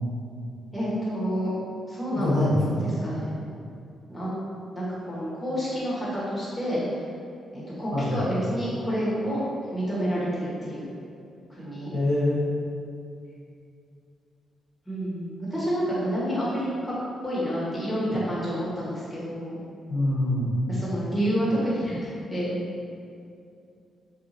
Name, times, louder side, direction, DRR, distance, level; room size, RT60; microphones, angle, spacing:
voice 1, 0.7-1.6 1.9-2.4 2.8-3.4 4.1-4.3 4.7-7.0 7.5-9.4 9.7-10.9 11.5-12.0 14.9-16.9 17.2-19.6 20.7-22.6, equal, 10° left, -9 dB, 1.2 m, -29 dB
voice 2, 2.1-2.8 7.9-8.2 11.9-12.4 19.9-20.5, left 1 dB, 75° left, -10 dB, 0.9 m, -24 dB
2.7 x 2.4 x 2.7 m, 2.4 s
supercardioid pair, 50°, 0 cm